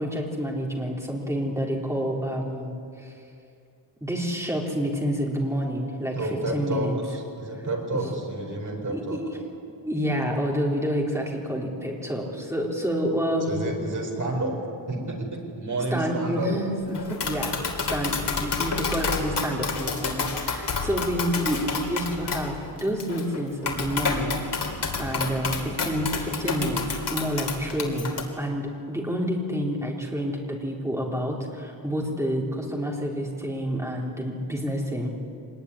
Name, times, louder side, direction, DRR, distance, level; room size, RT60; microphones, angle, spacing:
voice 1, 0.0-3.1 4.0-7.0 7.9-8.0 8.9-9.3 9.9-13.6 15.9-24.4 24.7-35.1, equal, 5° right, -2 dB, 3.9 m, -28 dB
voice 2, 6.1-9.2 13.5-14.5 14.9-16.5, right 2 dB, 40° right, 1 dB, 4.5 m, -30 dB
Tap, 16.9-28.2, left 4 dB, 60° left, 3.4 m, -29 dB
25.0 x 20.5 x 9.9 m, 2.5 s
wide cardioid pair, 180°, 46 cm